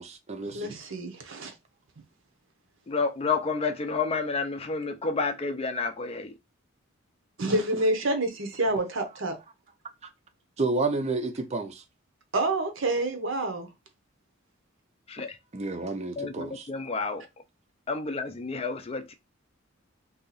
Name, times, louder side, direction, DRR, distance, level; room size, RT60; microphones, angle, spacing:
voice 1, 0.0-0.7 10.6-11.8 15.5-16.7, right 3 dB, 30° right, 0.5 m, -30 dB
voice 2, 0.5-1.5 7.4-9.4 12.3-13.7, right 2 dB, 60° right, 0.8 m, -28 dB
voice 3, 2.9-6.3 15.1-15.4 16.2-17.2 17.9-19.1, left 4 dB, 30° left, 0.4 m, -30 dB
2.8 x 2.4 x 4.0 m
head